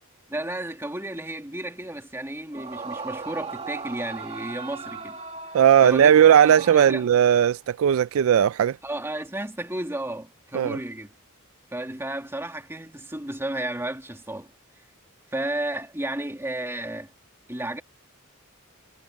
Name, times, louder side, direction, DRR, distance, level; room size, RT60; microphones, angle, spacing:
voice 1, 0.3-5.2 5.8-7.1 8.8-11.1 11.7-14.5 15.3-17.1 17.5-17.8, right 1 dB, 10° right, 2.1 m, -33 dB
Yell / Screaming, 2.5-7.4, right 4 dB, 30° right, 2.1 m, -37 dB
voice 2, 5.5-8.8 10.5-10.8, right 9 dB, 70° right, 0.3 m, -17 dB
head